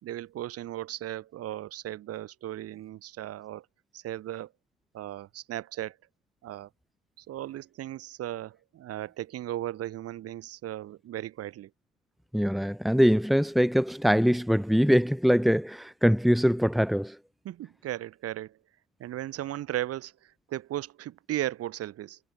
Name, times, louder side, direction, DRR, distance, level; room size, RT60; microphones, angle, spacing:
voice 1, 0.0-3.6 3.9-4.5 4.9-6.0 6.4-6.7 7.2-11.7 17.4-18.6 19.0-22.2, right 13 dB, 40° right, 4.4 m, -36 dB
voice 2, 12.3-17.1, equal, ahead, 2.4 m, -23 dB
figure-of-eight pair, 75°, 37 cm